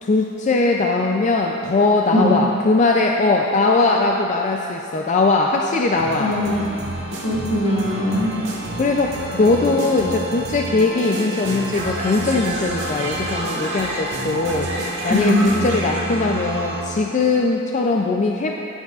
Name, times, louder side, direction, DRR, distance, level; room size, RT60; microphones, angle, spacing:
voice 1, 0.0-6.4 8.0-8.2 8.7-14.7 15.0-18.5, left 3 dB, 35° left, 1 dB, 0.4 m, -20 dB
sound 1, 6.0-17.1, right 1 dB, 60° right, 1.6 m, -28 dB
voice 2, 6.2-6.7 7.2-8.3 15.1-15.5, left 1 dB, 70° left, -7 dB, 2.2 m, -20 dB
13.5 x 8.0 x 2.4 m, 2.7 s
head